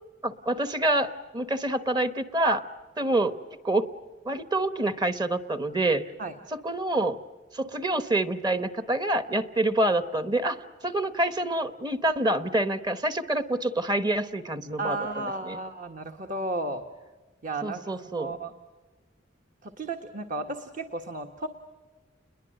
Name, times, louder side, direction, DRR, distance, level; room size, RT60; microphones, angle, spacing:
voice 1, 0.2-2.6 3.0-3.4 3.6-3.9 4.2-6.0 6.5-7.2 7.5-10.6 10.8-15.6 17.6-18.4, right 1 dB, 25° right, 11 dB, 1.1 m, -27 dB
voice 2, 14.8-16.8 17.4-17.8 18.2-18.5 19.6-21.5, right 2 dB, 45° right, 5 dB, 1.4 m, -33 dB
29.5 x 22.0 x 7.7 m, 1.3 s
head